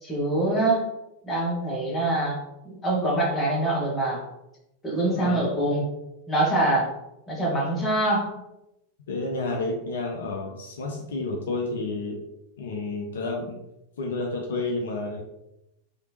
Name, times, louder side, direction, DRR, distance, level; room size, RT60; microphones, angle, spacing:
voice 1, 0.0-0.8 1.2-2.4 2.6-4.2 4.8-5.9 6.3-6.9 7.3-8.3, right 1 dB, 15° left, -4 dB, 1.2 m, -24 dB
voice 2, 9.1-12.2 12.6-13.6 14.0-15.2, left 2 dB, 60° left, 0 dB, 0.5 m, -30 dB
3.3 x 2.8 x 2.8 m, 0.88 s
figure-of-eight pair, 90°, 0 cm